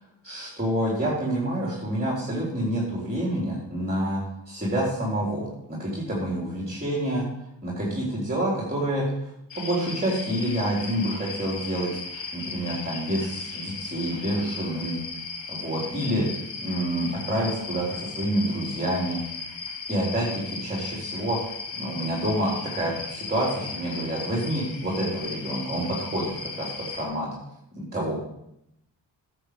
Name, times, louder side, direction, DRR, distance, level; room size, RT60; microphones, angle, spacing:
voice 1, 0.2-4.2 4.5-7.3 7.6-15.0 15.5-16.3 16.6-19.2 19.9-21.4 21.7-27.3 27.8-28.2, right 1 dB, 20° right, -5 dB, 3.8 m, -28 dB
sound 1, 9.5-27.0, left 4 dB, 75° left, 2.0 m, -37 dB
9.7 x 7.7 x 4.8 m, 0.80 s
supercardioid pair, 45°, 46 cm